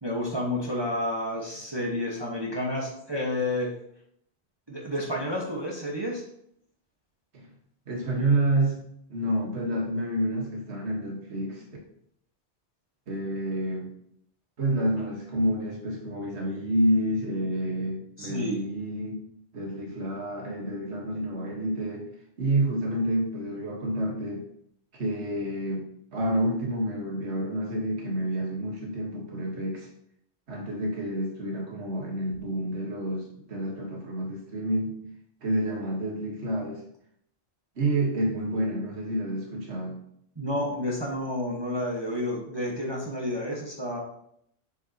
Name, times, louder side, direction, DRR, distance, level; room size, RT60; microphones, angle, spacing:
voice 1, 0.0-3.7 4.7-6.2 18.2-18.6 40.4-44.0, left 1 dB, 25° right, -4 dB, 1.3 m, -30 dB
voice 2, 7.9-8.8 9.1-11.6 13.1-13.9 14.6-19.2 19.5-22.1 22.4-24.4 24.9-29.9 30.5-35.0 35.4-36.8 37.8-40.0, right 1 dB, 70° right, -1 dB, 1.7 m, -29 dB
7.5 x 6.9 x 2.9 m, 0.70 s
omnidirectional pair, 1.2 m